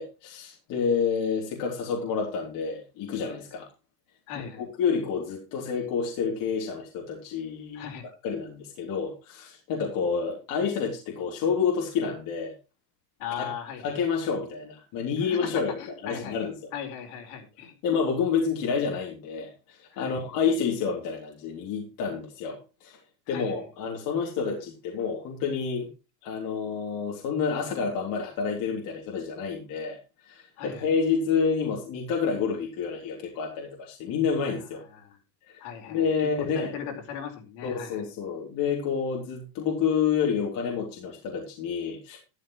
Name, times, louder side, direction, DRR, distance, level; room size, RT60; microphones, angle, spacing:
voice 1, 0.0-3.7 4.6-7.9 8.2-12.5 13.4-13.5 13.8-16.5 17.8-23.0 23.3-25.9 26.2-30.0 30.2-34.8 35.5-35.6 35.9-36.7 37.6-42.2, left 6 dB, 40° left, -1 dB, 3.5 m, -29 dB
voice 2, 4.3-4.7 7.7-8.1 13.2-14.0 15.2-15.5 15.8-16.5 16.7-17.7 19.9-20.2 23.3-23.6 30.6-30.9 34.9-35.2 35.6-38.1, left 8 dB, 60° left, 4 dB, 4.7 m, -38 dB
13.0 x 13.0 x 3.1 m, 0.29 s
cardioid pair, 170°, 49 cm